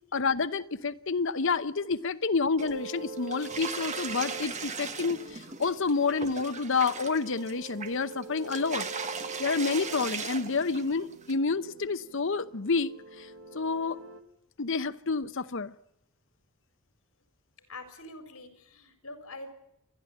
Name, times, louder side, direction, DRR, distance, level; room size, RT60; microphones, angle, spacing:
voice 1, 0.1-8.9 9.4-12.9 13.2-13.3 13.5-14.0 14.6-15.7, left 4 dB, 60° left, 0.8 m, -29 dB
sound 1, 2.6-2.9 3.2-11.3, right 5 dB, 30° right, 1.3 m, -38 dB
sound 2, 2.6-14.2, right 3 dB, 65° right, 2.2 m, -45 dB
voice 2, 17.7-19.5, left 2 dB, 75° left, 4.4 m, -45 dB
28.5 x 11.5 x 8.7 m
head